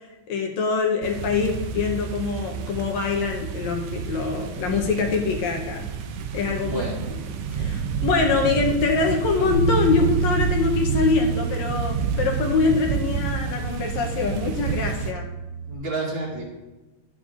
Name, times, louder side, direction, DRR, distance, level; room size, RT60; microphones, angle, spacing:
voice 1, 0.3-5.9 6.3-6.9 7.5-15.2, left 4 dB, 75° left, 1 dB, 2.1 m, -24 dB
sound 1, 1.0-15.1, right 6 dB, 80° right, 1.3 m, -30 dB
voice 2, 6.6-7.2 15.7-16.4, right 3 dB, 50° right, -7 dB, 3.6 m, -30 dB
Bass guitar, 9.5-15.7, right 4 dB, 35° left, 1.7 m, -29 dB
12.0 x 8.8 x 2.5 m, 1.1 s
omnidirectional pair, 3.4 m